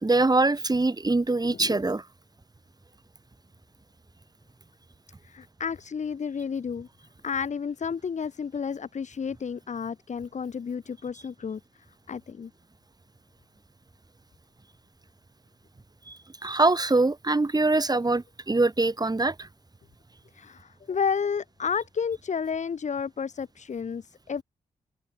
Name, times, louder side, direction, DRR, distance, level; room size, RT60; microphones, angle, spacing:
voice 1, 0.0-2.0 16.1-16.2 16.4-19.5, right 2 dB, 25° right, 2.9 m, -23 dB
voice 2, 1.4-1.8 5.2-6.9 7.2-11.6 12.1-12.5 20.3-24.4, left 6 dB, 50° left, 1.2 m, -31 dB
open air
supercardioid pair, 45°, 15 cm